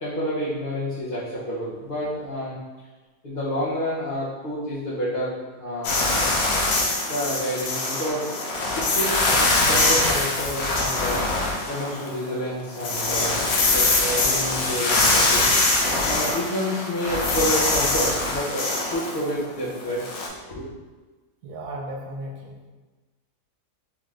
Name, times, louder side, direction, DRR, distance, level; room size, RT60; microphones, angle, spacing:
voice 1, 0.0-2.6 3.2-6.3 7.1-8.4 8.7-11.2 11.7-13.4 13.7-15.5 16.1-20.0 20.3-20.7, equal, 45° left, -10 dB, 0.7 m, -29 dB
sound 1, 5.8-12.3 12.6-20.3, left 2 dB, 65° left, 1.1 m, -23 dB
voice 2, 21.4-22.7, right 1 dB, 70° right, 0 dB, 1.2 m, -35 dB
3.7 x 3.6 x 3.2 m, 1.3 s
omnidirectional pair, 1.8 m